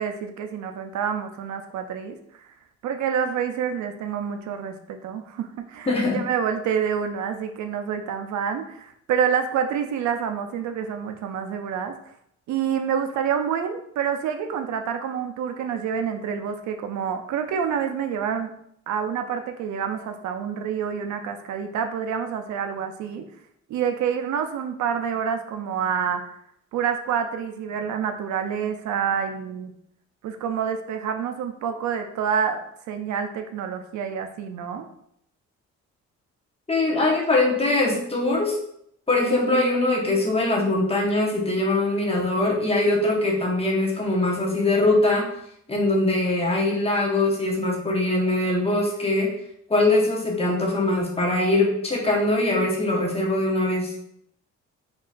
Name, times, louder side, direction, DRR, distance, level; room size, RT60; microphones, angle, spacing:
voice 1, 0.0-2.4 2.8-11.9 12.5-18.5 18.9-23.2 23.7-26.2 26.7-29.7 30.2-32.6 32.9-34.8, right 7 dB, 70° right, 7 dB, 0.5 m, -27 dB
voice 2, 5.9-6.2 36.7-38.6 39.1-45.3 45.7-49.3 49.7-53.9, left 2 dB, 20° left, -2 dB, 1.0 m, -22 dB
4.2 x 2.9 x 2.4 m, 0.72 s
cardioid pair, 90°, 30 cm